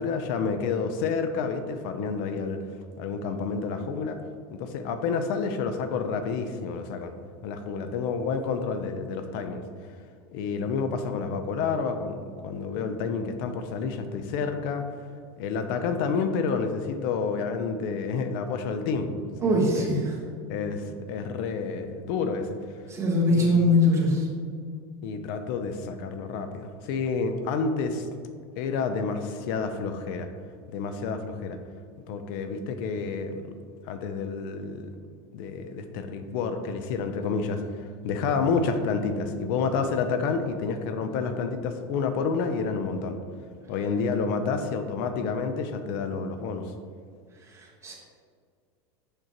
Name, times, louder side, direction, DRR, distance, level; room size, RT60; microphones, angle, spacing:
voice 1, 0.0-2.6 3.0-4.2 4.6-7.1 7.4-9.6 10.3-14.8 15.4-19.1 19.4-19.9 20.5-22.6 23.3-23.8 25.0-28.1 28.6-30.3 30.7-31.6 32.1-33.6 33.8-35.0 35.3-43.2 43.7-46.7, left 5 dB, 65° left, 8 dB, 0.5 m, -29 dB
voice 2, 19.4-20.1 22.9-24.3 47.5-47.9, left 1 dB, 20° right, -3 dB, 1.6 m, -22 dB
6.5 x 6.1 x 2.9 m, 2.2 s
supercardioid pair, 120°, 13 cm